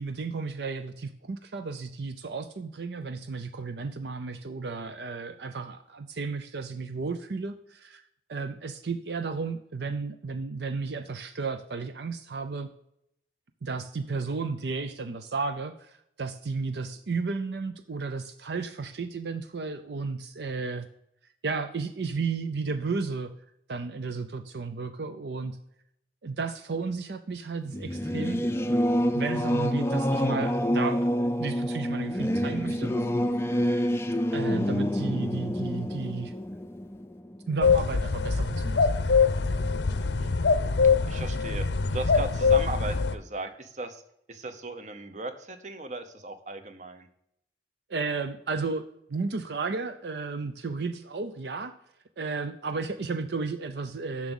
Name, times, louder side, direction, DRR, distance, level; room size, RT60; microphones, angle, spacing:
voice 1, 0.0-8.0 8.3-12.7 13.6-15.9 16.2-20.9 21.4-23.3 23.7-25.6 26.2-28.5 29.1-31.1 31.4-32.9 34.3-36.3 37.5-38.9 47.9-51.7 52.2-54.3, right 4 dB, 75° right, 9 dB, 0.6 m, -33 dB
Singing / Musical instrument, 27.7-37.8, equal, 15° left, 0.4 m, -27 dB
sound 1, 37.6-43.1, left 5 dB, 85° left, 0.6 m, -24 dB
voice 2, 40.0-40.3 41.1-41.7 41.9-44.0 44.3-47.1, right 2 dB, 40° right, 9 dB, 0.8 m, -37 dB
7.5 x 6.1 x 7.0 m, 0.75 s
head